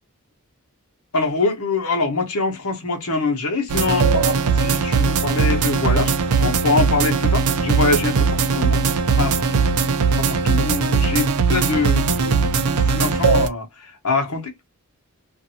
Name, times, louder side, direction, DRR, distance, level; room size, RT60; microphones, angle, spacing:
voice 1, 1.1-8.8 9.2-9.6 10.3-14.5, left 3 dB, 80° left, 1.0 m, -24 dB
sound 1, 3.7-13.5, right 4 dB, 80° right, 0.5 m, -19 dB
2.6 x 2.5 x 2.7 m
head